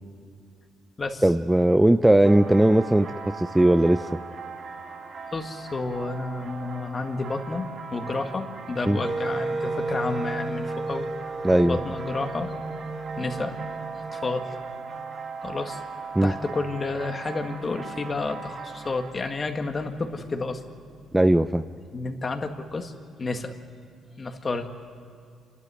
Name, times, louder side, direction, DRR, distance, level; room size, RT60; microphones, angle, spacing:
voice 1, 1.2-3.1 3.4-4.1 8.9-9.0 11.4-11.8 16.1-16.3 21.1-21.7, right 1 dB, 10° right, 10 dB, 0.5 m, -18 dB
sound 1, 2.2-19.1, right 5 dB, 60° right, 2.6 m, -39 dB
voice 2, 5.3-11.1 11.6-12.5 13.2-13.6 13.9-14.6 15.4-15.8 16.2-20.6 21.9-22.9 23.2-23.6 24.2-24.7, left 3 dB, 35° left, 5 dB, 1.7 m, -30 dB
Wind instrument woodwind instrument, 9.0-15.0, right 3 dB, 45° right, 2.4 m, -33 dB
28.0 x 12.0 x 9.4 m, 2.3 s
cardioid pair, 90°, 0 cm